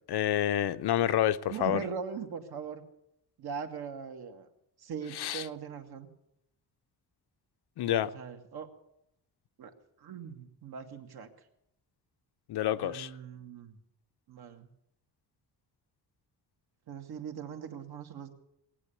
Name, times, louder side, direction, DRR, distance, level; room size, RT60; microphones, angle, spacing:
voice 1, 0.1-1.8 5.2-5.4 7.8-8.1 12.5-13.1, left 11 dB, 75° left, 0.7 m, -28 dB
voice 2, 1.5-2.8 3.4-4.5 4.8-6.1 7.9-8.7 9.6-11.3 12.8-13.8 14.3-14.7 16.9-18.3, right 7 dB, 65° right, 2.0 m, -40 dB
18.5 x 9.1 x 8.4 m
wide cardioid pair, 165°, 40 cm